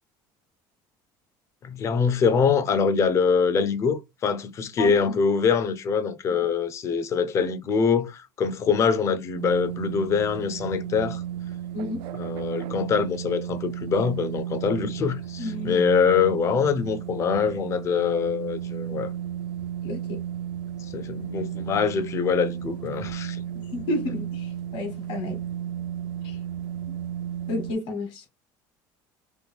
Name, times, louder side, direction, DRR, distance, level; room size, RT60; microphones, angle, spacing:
voice 1, 1.6-11.2 12.2-19.1 20.9-23.4, left 5 dB, 30° left, 0.5 m, -24 dB
voice 2, 4.8-5.2 11.7-12.0 15.4-15.8 19.8-20.2 23.5-25.4 26.2-26.4 26.9-27.0 27.5-28.2, left 2 dB, 60° left, 1.2 m, -31 dB
sound 1, 9.3-27.7, right 10 dB, 65° right, 0.4 m, -34 dB
2.9 x 2.3 x 3.4 m
cardioid pair, 150°, 9 cm